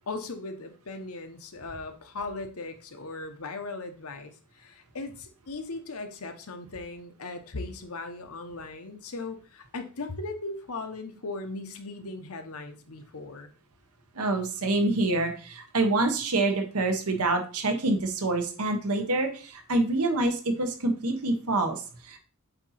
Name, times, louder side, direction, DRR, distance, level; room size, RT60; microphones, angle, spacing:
voice 1, 0.1-13.5, left 3 dB, 75° left, 6 dB, 0.9 m, -38 dB
voice 2, 14.1-22.2, right 2 dB, 90° right, 5 dB, 1.1 m, -26 dB
7.9 x 2.8 x 4.2 m, 0.37 s
head